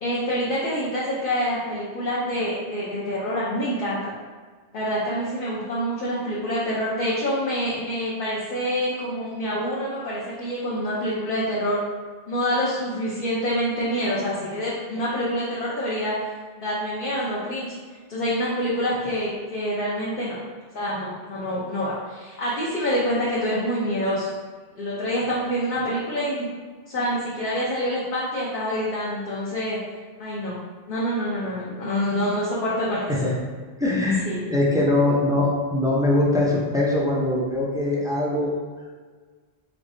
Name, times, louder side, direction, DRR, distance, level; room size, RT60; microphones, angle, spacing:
voice 1, 0.0-4.2 4.7-11.8 12.3-16.2 16.6-17.8 18.1-20.4 20.7-24.3 24.8-26.5 26.9-29.8 30.2-30.6 30.9-33.1 34.3-34.5, equal, 60° left, -8 dB, 0.9 m, -26 dB
voice 2, 33.8-38.5, left 2 dB, 5° right, -5 dB, 0.4 m, -22 dB
4.0 x 3.3 x 2.6 m, 1.5 s
omnidirectional pair, 1.0 m